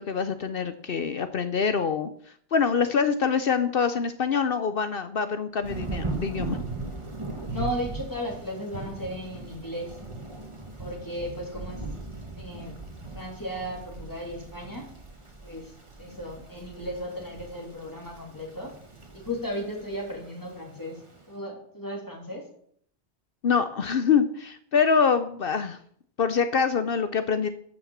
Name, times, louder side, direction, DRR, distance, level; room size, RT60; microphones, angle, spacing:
voice 1, 0.0-2.1 2.5-6.6 23.4-25.8 26.2-27.5, left 6 dB, 60° left, 10 dB, 0.9 m, -25 dB
Thunder / Rain, 5.6-21.2, right 3 dB, 25° right, 1.8 m, -39 dB
voice 2, 7.5-9.9 10.8-11.8 12.4-12.8 13.1-14.9 15.4-15.7 16.0-18.7 19.1-21.0 21.3-22.4, equal, 15° left, -1 dB, 3.5 m, -35 dB
12.5 x 6.5 x 7.4 m, 0.64 s
omnidirectional pair, 1.1 m